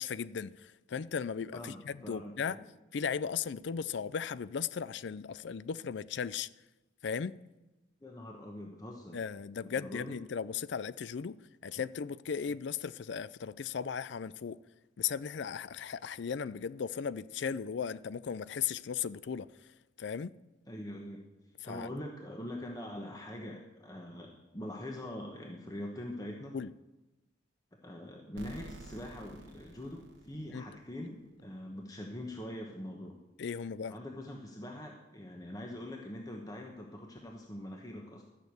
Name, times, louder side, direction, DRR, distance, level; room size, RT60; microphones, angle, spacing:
voice 1, 0.0-2.6 2.9-6.5 7.0-7.3 9.1-14.6 15.0-19.5 20.0-20.3 21.6-21.9 26.5-26.7 30.5-30.6 33.4-33.9, left 7 dB, 65° left, 0.4 m, -36 dB
voice 2, 1.5-2.6 8.0-9.2 9.6-10.2 20.7-21.2 21.6-26.5 27.8-33.2 33.5-33.6 33.9-38.2, left 1 dB, 20° left, 1.2 m, -43 dB
sound 1, 28.4-31.1, right 1 dB, 75° right, 1.3 m, -51 dB
13.5 x 6.6 x 8.0 m
head